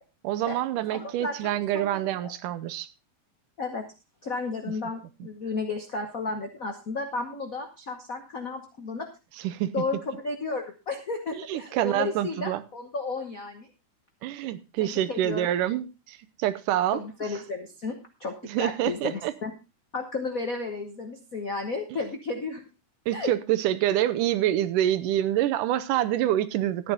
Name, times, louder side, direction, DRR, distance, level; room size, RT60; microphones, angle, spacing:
voice 1, 0.2-2.9 9.4-9.9 11.3-12.6 14.2-17.0 18.4-19.3 23.1-26.9, right 12 dB, 90° right, 14 dB, 2.4 m, -26 dB
voice 2, 0.9-2.3 3.6-3.9 4.2-9.1 9.7-13.7 14.8-15.5 16.9-19.5 19.9-22.6 23.1-23.3, left 3 dB, 80° left, 5 dB, 0.7 m, -33 dB
13.0 x 9.4 x 3.9 m, 0.29 s
omnidirectional pair, 3.6 m